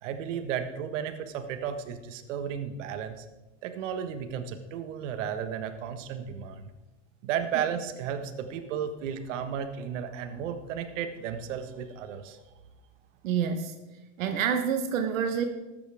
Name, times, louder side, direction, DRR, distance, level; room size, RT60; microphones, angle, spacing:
voice 1, 0.0-3.2 3.6-6.6 7.2-12.4, right 8 dB, 70° right, 8 dB, 1.5 m, -34 dB
voice 2, 13.2-13.7 14.2-15.4, right 7 dB, 85° right, 6 dB, 1.3 m, -27 dB
14.0 x 12.5 x 3.5 m, 1.1 s
supercardioid pair, 145°, 39 cm